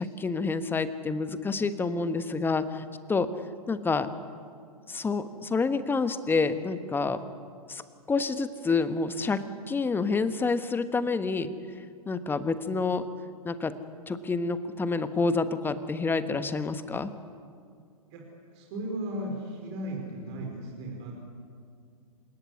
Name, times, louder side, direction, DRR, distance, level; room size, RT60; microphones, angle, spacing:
voice 1, 0.0-3.3 3.7-4.1 4.9-7.2 7.7-7.8 8.1-11.5 12.1-13.0 13.4-13.7 14.1-17.1, left 4 dB, 10° left, 11 dB, 1.3 m, -28 dB
voice 2, 18.5-21.1, right 1 dB, 45° right, 0 dB, 5.2 m, -36 dB
28.5 x 18.0 x 9.9 m, 2.3 s
figure-of-eight pair, 110°, 20 cm